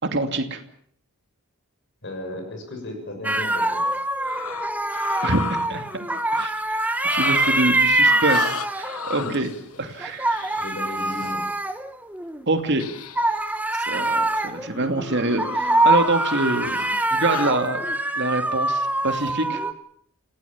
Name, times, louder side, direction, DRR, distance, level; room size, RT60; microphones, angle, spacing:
voice 1, 0.0-0.6 5.2-6.1 6.3-9.5 9.8-10.5 12.5-12.9 13.7-16.8 17.1-17.9 18.2-19.6, right 2 dB, 50° right, 6 dB, 2.6 m, -25 dB
voice 2, 2.0-3.9 9.2-9.9 10.6-11.5, left 1 dB, 55° left, 5 dB, 6.5 m, -35 dB
sound 1, 3.2-9.2 10.0-12.4 13.2-19.7, right 2 dB, 5° right, 1.1 m, -24 dB
sound 2, 4.0-6.5 6.9-7.8 8.0-11.4 12.8-13.4 13.7-13.9 14.4-17.6, left 6 dB, 75° left, 1.2 m, -35 dB
29.5 x 17.0 x 7.3 m, 0.66 s
head